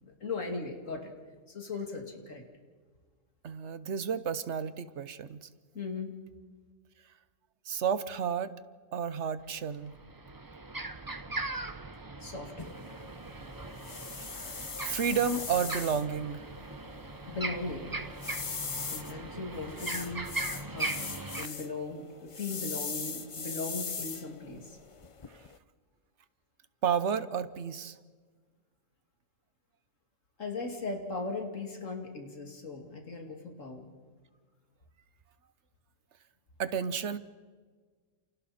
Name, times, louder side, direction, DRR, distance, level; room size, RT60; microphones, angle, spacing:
voice 1, 0.0-1.1 1.5-2.4 5.7-6.2 12.2-12.8 17.3-18.0 18.7-20.3 20.7-21.0 21.4-24.8 30.4-33.9, left 3 dB, 70° left, 3 dB, 2.8 m, -38 dB
voice 2, 3.4-5.5 7.6-8.5 8.9-9.9 14.8-16.4 26.8-28.0 36.6-37.2, right 7 dB, 60° right, 13 dB, 1.2 m, -31 dB
sound 1, 9.4-9.5 9.9-21.5, right 2 dB, 20° right, 0.7 m, -39 dB
sound 2, 12.6-25.6, left 5 dB, 30° left, 0.6 m, -41 dB
29.5 x 28.5 x 4.3 m, 1.5 s
omnidirectional pair, 1.4 m